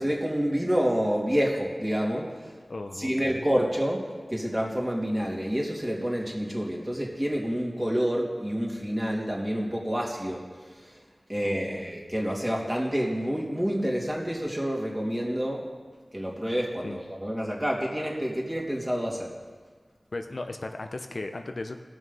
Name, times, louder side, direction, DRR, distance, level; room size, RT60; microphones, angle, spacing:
voice 1, 0.0-2.5 3.0-10.4 10.7-11.0 11.3-15.6 16.1-19.3, equal, 15° right, -3 dB, 2.8 m, -28 dB
voice 2, 2.7-3.5 11.4-11.8 16.8-17.0 20.1-21.8, left 2 dB, 70° left, 6 dB, 0.8 m, -36 dB
16.5 x 6.2 x 5.5 m, 1.5 s
wide cardioid pair, 45°, 0 cm